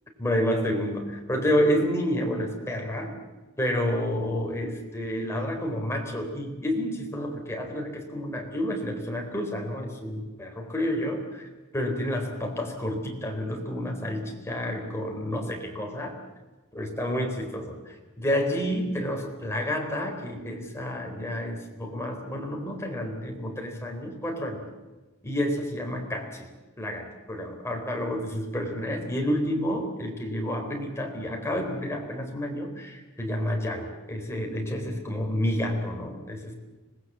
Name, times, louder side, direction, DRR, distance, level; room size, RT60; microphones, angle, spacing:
voice 1, 0.2-3.1 3.6-11.4 11.7-16.2 16.7-24.6 25.2-26.5 26.8-36.5, equal, 15° left, 1 dB, 4.0 m, -29 dB
25.5 x 19.5 x 7.5 m, 1.2 s
head